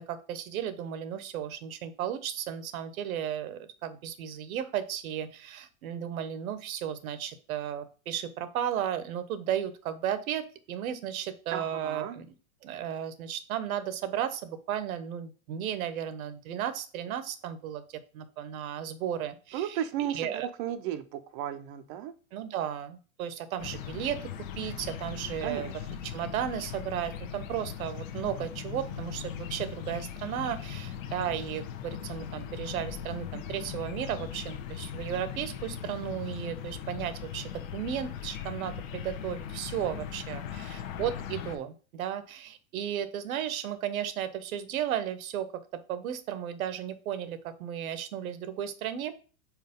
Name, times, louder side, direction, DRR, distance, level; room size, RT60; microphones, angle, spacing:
voice 1, 0.0-12.3 12.6-20.5 22.3-24.2 24.6-25.7 26.0-45.5 45.9-49.1, right 10 dB, 75° right, 12 dB, 1.1 m, -34 dB
voice 2, 11.5-12.2 19.5-20.2 20.6-22.1 25.4-25.7, right 11 dB, 35° right, 11 dB, 0.6 m, -34 dB
sound 1, 23.6-41.6, left 9 dB, 65° left, 1.1 m, -39 dB
4.7 x 4.6 x 5.2 m, 0.38 s
supercardioid pair, 155°, 43 cm